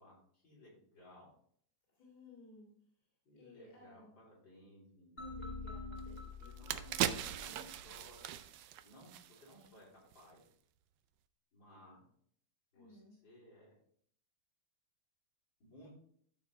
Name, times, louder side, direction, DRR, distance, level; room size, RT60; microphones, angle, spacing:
voice 1, 0.0-1.3 3.2-5.6 6.5-6.9 7.4-8.4 8.8-10.4 11.5-12.0 12.7-13.7 15.6-15.9, equal, 80° left, -6 dB, 4.5 m, -60 dB
voice 2, 1.9-2.7 3.4-4.1 5.2-7.9 12.7-13.2, left 2 dB, 55° left, -5 dB, 2.8 m, -59 dB
sound 1, 5.2-8.2, left 3 dB, 35° left, 1.9 m, -47 dB
sound 2, 6.0-6.1 6.5-9.7 10.0-10.2, right 11 dB, 85° right, 1.3 m, -39 dB
12.5 x 4.6 x 3.4 m, 0.63 s
omnidirectional pair, 2.0 m